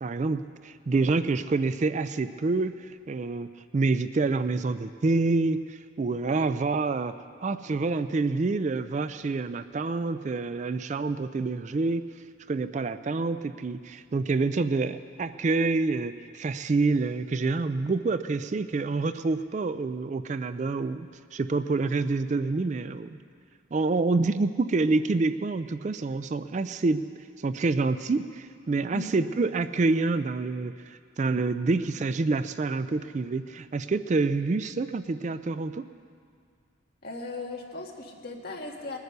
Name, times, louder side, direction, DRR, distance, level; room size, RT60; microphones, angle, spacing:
voice 1, 0.0-7.2 7.4-12.0 12.5-23.1 23.7-35.8, right 3 dB, 35° right, 12 dB, 0.3 m, -27 dB
voice 2, 37.0-39.0, left 3 dB, 50° left, 0 dB, 1.8 m, -37 dB
20.5 x 9.6 x 6.7 m, 2.2 s
head